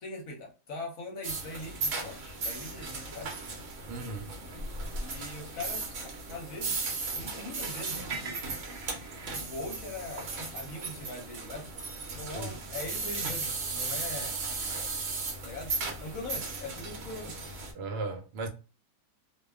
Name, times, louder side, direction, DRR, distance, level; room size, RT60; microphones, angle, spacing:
voice 1, 0.0-3.4 5.0-5.9 6.3-8.4 9.4-11.7 12.1-14.4 15.4-17.4, left 2 dB, 65° left, 1.1 m, -41 dB
sound 1, 1.2-17.7, right 3 dB, 60° right, 0.9 m, -36 dB
voice 2, 3.9-4.3 12.3-12.5 17.7-18.5, right 3 dB, 80° right, 1.1 m, -36 dB
2.7 x 2.2 x 2.3 m
omnidirectional pair, 1.7 m